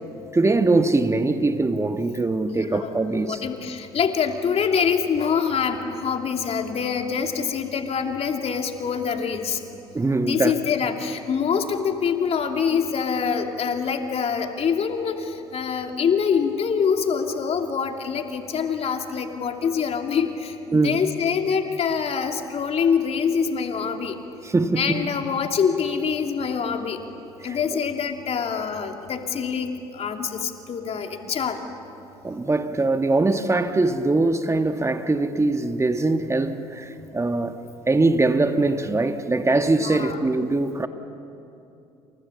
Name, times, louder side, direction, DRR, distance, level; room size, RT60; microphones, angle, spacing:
voice 1, 0.3-3.4 9.9-10.6 20.7-21.0 24.4-25.0 27.4-27.8 32.2-37.6 37.9-40.9, right 2 dB, 20° right, 1.6 m, -22 dB
voice 2, 2.5-9.6 10.2-24.2 24.8-27.0 27.4-31.6 39.8-40.2, left 6 dB, 50° left, 2.8 m, -25 dB
29.5 x 28.0 x 7.1 m
hypercardioid pair, 55°, 14 cm